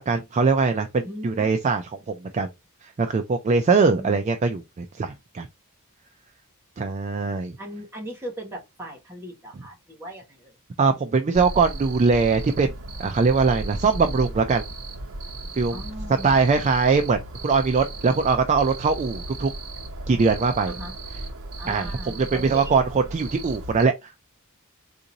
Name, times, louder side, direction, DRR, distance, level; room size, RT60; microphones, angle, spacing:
voice 1, 0.0-1.8 2.3-2.5 3.0-5.5 6.8-7.5 10.8-12.7 13.0-14.6 15.6-15.8 16.2-19.5 20.1-20.7 21.7-23.9, right 4 dB, 30° right, 0.3 m, -21 dB
voice 2, 1.0-1.5 7.6-10.6 15.7-16.3 20.6-21.0 21.6-22.8, equal, 10° right, 1.4 m, -38 dB
Cricket, 11.3-23.8, right 2 dB, 65° right, 0.9 m, -36 dB
3.8 x 2.6 x 2.8 m
head